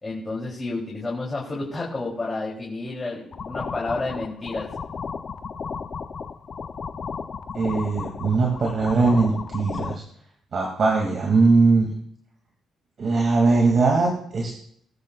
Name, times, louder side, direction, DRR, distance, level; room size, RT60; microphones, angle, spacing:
voice 1, 0.0-4.7, left 3 dB, 20° left, -4 dB, 3.3 m, -30 dB
sound 1, 3.3-10.0, left 5 dB, 45° left, 0.7 m, -34 dB
voice 2, 7.5-10.0 10.5-11.9 13.0-14.6, right 3 dB, 50° right, 0 dB, 2.6 m, -20 dB
20.5 x 12.5 x 2.5 m, 0.68 s
cardioid pair, 90°, 0 cm